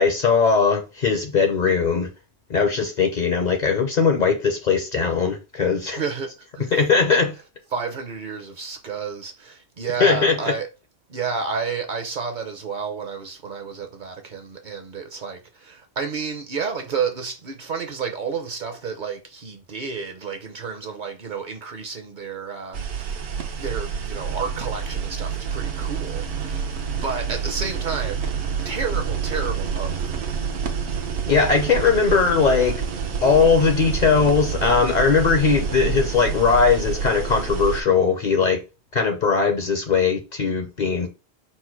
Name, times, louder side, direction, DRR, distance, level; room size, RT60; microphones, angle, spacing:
voice 1, 0.0-2.1 2.5-6.0 6.7-7.3 10.0-10.4 31.3-32.8 33.2-38.6 38.9-41.1, left 5 dB, 50° left, 0.6 m, -19 dB
voice 2, 5.9-7.2 7.7-10.7 11.1-23.2 23.6-28.2 28.6-30.2, right 5 dB, 50° right, 0.7 m, -31 dB
sound 1, 22.7-37.8, right 6 dB, 75° right, 1.0 m, -28 dB
4.3 x 2.1 x 4.4 m
omnidirectional pair, 1.1 m